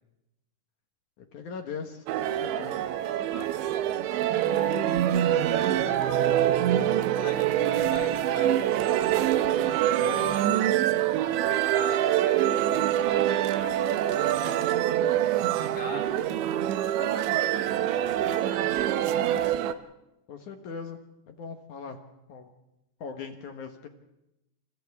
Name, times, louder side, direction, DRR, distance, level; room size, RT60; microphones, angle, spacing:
voice 1, 1.2-2.8 9.9-10.4 20.3-21.0 21.3-22.0 22.3-22.5 23.0-23.9, left 6 dB, 60° left, 5 dB, 2.1 m, -40 dB
sound 1, 2.1-19.7, right 11 dB, 85° right, 3.2 m, -25 dB
voice 2, 4.4-4.9 5.5-6.5 7.2-9.0 9.8-10.2 11.5-12.6 13.1-14.5 15.5-16.1 16.8-18.0 18.4-19.1, left 2 dB, 40° left, 0 dB, 4.8 m, -42 dB
29.5 x 29.0 x 3.6 m, 0.91 s
omnidirectional pair, 5.1 m